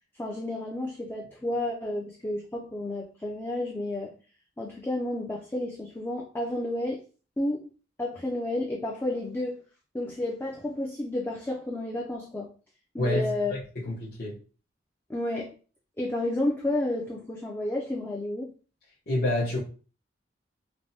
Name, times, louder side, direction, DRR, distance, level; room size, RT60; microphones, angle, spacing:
voice 1, 0.2-4.1 4.6-7.0 7.4-7.7 8.0-9.6 9.9-12.5 12.9-13.5 15.1-15.6 16.0-18.5, left 1 dB, 10° left, 0.3 m, -31 dB
voice 2, 13.0-14.4 19.1-19.6, left 1 dB, 55° left, 0.7 m, -28 dB
3.2 x 2.1 x 2.6 m
head